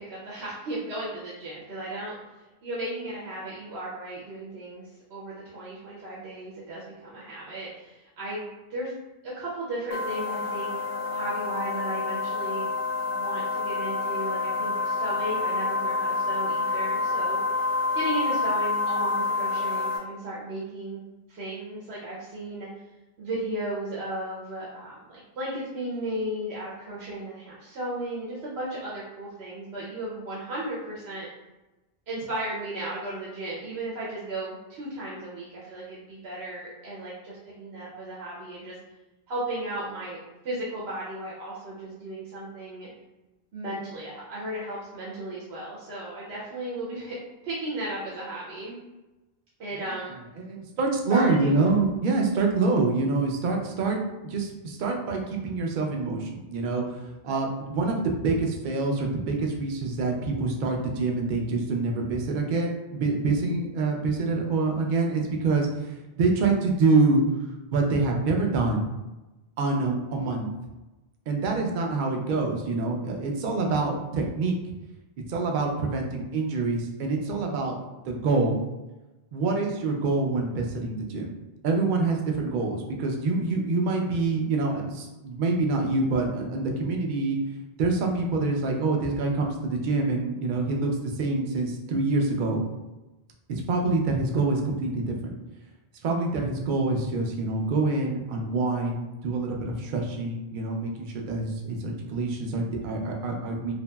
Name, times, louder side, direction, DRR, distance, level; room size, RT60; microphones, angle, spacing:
voice 1, 0.0-8.9 9.2-10.8 11.1-12.7 13.0-17.4 17.9-21.0 21.3-22.7 23.2-31.3 32.1-38.8 39.3-40.2 40.4-42.9 43.5-47.2 47.4-48.8 49.6-50.2 51.1-51.7, right 1 dB, 90° right, -7 dB, 1.0 m, -35 dB
sound 1, 9.9-20.0, left 3 dB, 50° left, 0.5 m, -28 dB
voice 2, 50.5-67.2 67.7-68.9 69.6-70.5 71.3-74.6 75.3-77.8 78.1-78.6 79.3-81.3 81.6-87.4 87.8-92.6 93.5-95.3 96.0-103.7, right 3 dB, 60° right, 1 dB, 0.6 m, -26 dB
2.9 x 2.6 x 2.2 m, 1.1 s
omnidirectional pair, 1.0 m